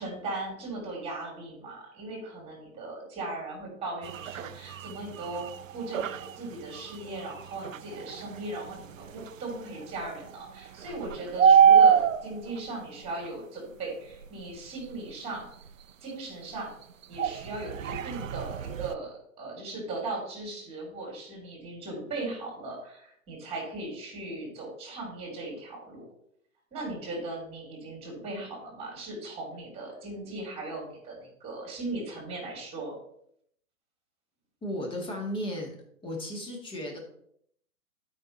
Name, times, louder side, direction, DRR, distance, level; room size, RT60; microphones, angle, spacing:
voice 1, 0.0-5.4 5.7-15.5 16.0-16.7 17.1-26.0 26.7-33.0, right 2 dB, 15° right, 0 dB, 3.3 m, -38 dB
sound 1, 4.0-13.3 13.9-16.1 16.4-19.0, right 7 dB, 65° right, 0.6 m, -27 dB
voice 2, 34.6-35.8 36.0-37.0, left 1 dB, 10° left, 0 dB, 2.0 m, -34 dB
12.0 x 5.1 x 4.1 m, 0.70 s
figure-of-eight pair, 115°, 42 cm